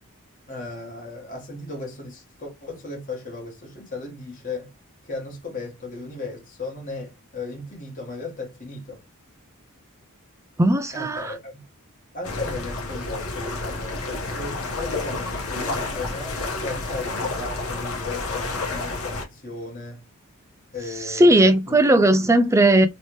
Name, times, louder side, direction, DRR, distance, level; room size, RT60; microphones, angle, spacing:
voice 1, 0.5-4.7 5.0-9.0 10.9-11.5 12.1-20.0 20.7-21.8 22.2-22.3, left 3 dB, 40° left, 1.2 m, -36 dB
voice 2, 10.6-11.3 21.1-22.9, right 1 dB, 15° right, 0.3 m, -17 dB
sound 1, 12.2-19.3, left 3 dB, 75° left, 1.0 m, -30 dB
3.1 x 2.8 x 2.9 m
head